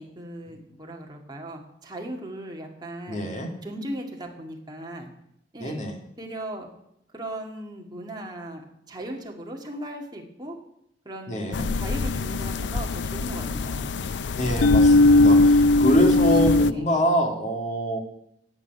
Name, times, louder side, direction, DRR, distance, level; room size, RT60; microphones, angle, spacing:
voice 1, 0.0-3.3 3.6-5.1 5.5-5.8 6.2-6.7 7.1-10.6 11.0-11.5 11.8-13.9 15.7-15.9 16.7-16.9, right 1 dB, 25° right, 0 dB, 2.2 m, -37 dB
voice 2, 3.1-3.5 5.6-5.9 11.3-11.7 14.4-18.0, equal, 45° left, 2 dB, 2.3 m, -25 dB
sound 1, 11.5-16.7, left 2 dB, 80° left, 0.5 m, -20 dB
16.0 x 5.4 x 9.5 m, 0.77 s
head